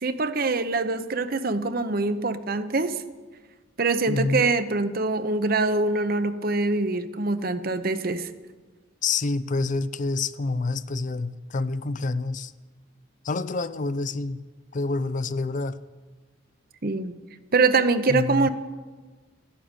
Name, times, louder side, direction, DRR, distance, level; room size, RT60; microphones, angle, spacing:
voice 1, 0.0-3.0 3.8-8.3 16.8-17.2 17.5-18.5, right 3 dB, 45° right, 0.8 m, -24 dB
voice 2, 4.1-4.5 9.0-12.5 13.2-14.4 14.7-15.8 18.1-18.5, left 3 dB, 40° left, 0.5 m, -27 dB
14.0 x 11.5 x 9.0 m
head